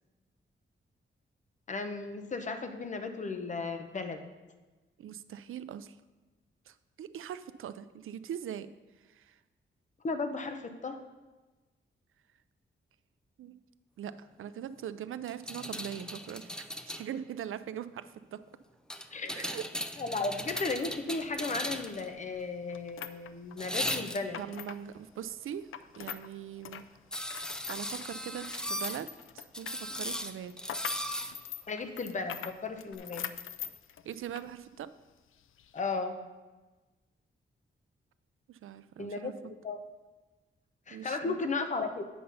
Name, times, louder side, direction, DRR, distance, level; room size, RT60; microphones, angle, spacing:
voice 1, 1.7-4.2 10.0-11.0 19.1-19.4 20.0-24.4 31.7-33.3 35.7-36.2 39.0-39.8 40.9-42.0, left 3 dB, 35° left, 7 dB, 0.8 m, -35 dB
voice 2, 5.0-6.0 6.7-8.7 9.1-9.4 13.4-13.6 14.0-18.4 19.3-19.6 24.4-25.7 26.0-26.8 27.2-29.1 29.3-30.9 34.0-34.9 38.5-39.3 40.9-41.5, right 9 dB, 80° right, 13 dB, 0.4 m, -41 dB
sound 1, 15.3-17.1 18.9-22.1 23.6-24.5 27.1-29.0 29.5-31.3 32.9-33.0, equal, 5° left, 0.4 m, -37 dB
sound 2, 20.3-26.3 26.5-34.5 34.8-34.9 35.6-35.8, left 9 dB, 75° left, 0.4 m, -43 dB
8.5 x 5.5 x 5.5 m, 1.2 s
wide cardioid pair, 145°, 21 cm